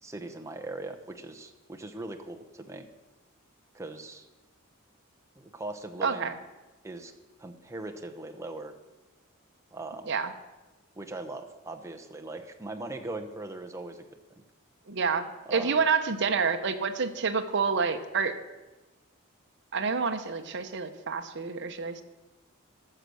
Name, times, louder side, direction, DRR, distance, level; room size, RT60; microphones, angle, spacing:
voice 1, 0.0-2.9 3.7-4.3 5.4-6.3 6.8-7.1 7.4-8.7 9.7-10.1 11.0-14.0 14.4-14.5 15.5-15.8, right 2 dB, 15° right, 4 dB, 1.0 m, -40 dB
voice 2, 6.0-6.3 10.1-10.3 14.9-18.4 19.7-22.0, right 5 dB, 60° right, 7 dB, 0.9 m, -28 dB
13.5 x 6.7 x 6.3 m, 1.1 s
head